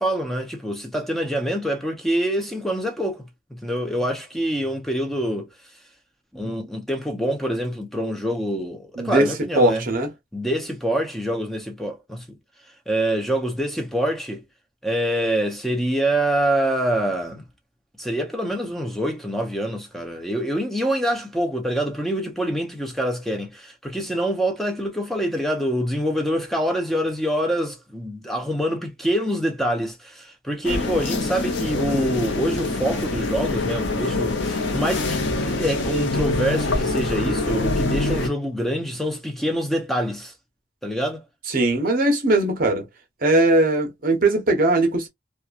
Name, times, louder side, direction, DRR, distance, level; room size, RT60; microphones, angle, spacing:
voice 1, 0.0-3.2 3.5-5.5 6.3-9.8 10.3-12.4 12.9-14.4 14.8-17.4 18.0-40.3 40.8-41.2, equal, ahead, 0.6 m, -25 dB
voice 2, 9.0-10.1 41.5-42.9 43.2-45.1, right 2 dB, 50° right, 0.8 m, -20 dB
sound 1, 30.6-38.3, left 2 dB, 75° left, 0.7 m, -25 dB
2.8 x 2.2 x 2.4 m
head